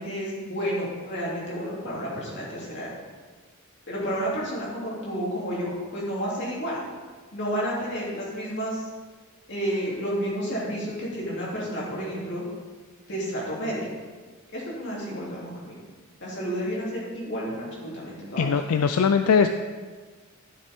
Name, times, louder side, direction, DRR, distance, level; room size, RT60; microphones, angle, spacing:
voice 1, 0.0-3.0 3.9-6.8 7.3-8.9 9.5-12.4 13.1-13.9 14.5-15.8 16.2-18.5, equal, 50° left, -5 dB, 3.0 m, -31 dB
voice 2, 18.4-19.5, left 6 dB, 80° left, 8 dB, 0.4 m, -20 dB
12.5 x 6.7 x 3.6 m, 1.4 s
head